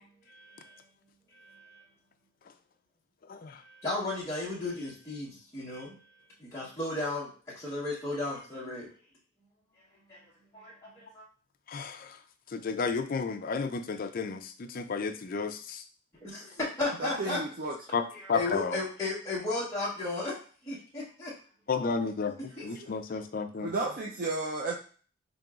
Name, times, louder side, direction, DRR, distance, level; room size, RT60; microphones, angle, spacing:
voice 1, 0.3-0.8 1.3-1.8 3.6-6.0 6.4-8.9 10.1-10.2 10.5-11.2 16.2-17.4 18.1-20.4 20.6-21.3 22.4-22.7 23.1-23.2, left 2 dB, 15° left, -9 dB, 0.9 m, -35 dB
voice 2, 3.3-3.6 11.7-12.2 12.5-15.8 17.9-18.8 21.7-22.4 22.6-23.7, left 5 dB, 45° left, 7 dB, 0.4 m, -32 dB
voice 3, 17.0-17.8 22.6-22.9 23.6-24.8, right 2 dB, 45° right, -1 dB, 0.4 m, -33 dB
5.2 x 2.8 x 2.4 m, 0.41 s
head